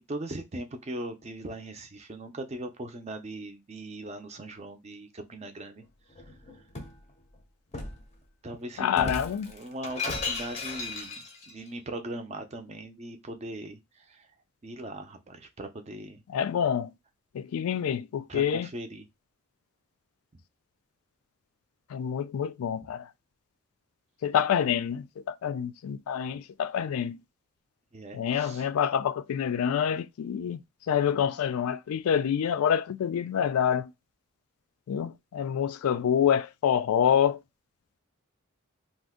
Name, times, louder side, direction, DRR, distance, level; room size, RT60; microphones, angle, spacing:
voice 1, 0.0-5.8 6.2-6.6 8.4-9.2 9.5-14.3 14.6-16.2 17.8-17.9 18.3-19.1 27.9-28.7, right 1 dB, 30° right, 0.5 m, -40 dB
Shatter, 6.1-7.0 7.7-8.0 8.9-11.5, left 3 dB, 30° left, 0.5 m, -36 dB
voice 2, 8.8-9.5 16.3-16.9 17.3-18.7 21.9-23.1 24.2-27.2 28.1-30.6 30.9-33.9 34.9-37.4, left 8 dB, 85° left, 0.3 m, -27 dB
2.5 x 2.1 x 3.5 m
head